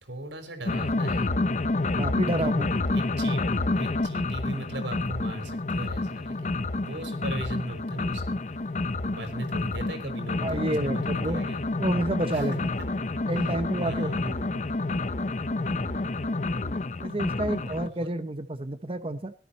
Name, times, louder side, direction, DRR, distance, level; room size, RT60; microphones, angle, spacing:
voice 1, 0.0-1.3 2.3-2.6 2.9-6.5 6.8-8.4 9.0-11.6 12.3-12.5 13.4-14.4 15.6-16.1 17.6-18.1, right 1 dB, 85° right, 8 dB, 4.0 m, -39 dB
sound 1, 0.6-17.9, left 2 dB, 40° left, 0.7 m, -29 dB
voice 2, 2.0-2.7 10.4-11.4 11.8-12.5 13.3-14.6 17.0-19.3, right 1 dB, 30° right, 9 dB, 0.8 m, -29 dB
18.0 x 12.0 x 4.2 m, 0.38 s
head